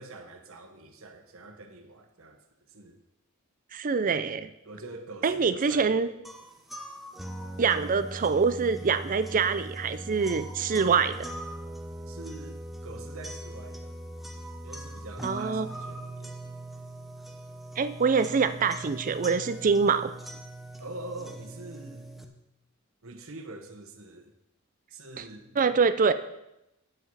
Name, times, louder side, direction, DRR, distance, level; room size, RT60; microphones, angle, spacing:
voice 1, 0.0-2.4 2.7-3.0 4.6-6.1 12.1-14.0 14.6-16.4 20.8-22.1 23.0-24.3 24.9-25.8, right 2 dB, 70° right, 5 dB, 1.3 m, -44 dB
voice 2, 3.7-4.5 5.2-6.1 7.6-11.3 15.2-15.7 17.8-20.1 25.2-25.3 25.6-26.1, right 5 dB, 40° right, 12 dB, 0.4 m, -25 dB
sound 1, 6.2-22.2, right 1 dB, ahead, 0.8 m, -40 dB
10.0 x 7.6 x 4.7 m, 0.87 s
head